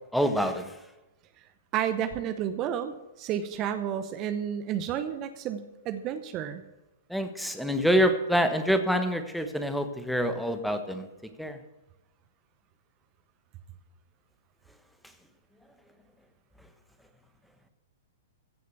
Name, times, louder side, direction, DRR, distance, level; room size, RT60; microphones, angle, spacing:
voice 1, 0.1-0.6 7.1-11.1 11.4-11.6, equal, ahead, 7 dB, 1.2 m, -26 dB
voice 2, 1.7-6.6, right 9 dB, 35° right, 10 dB, 0.8 m, -31 dB
15.5 x 6.5 x 6.9 m, 1.0 s
figure-of-eight pair, 110°, 0 cm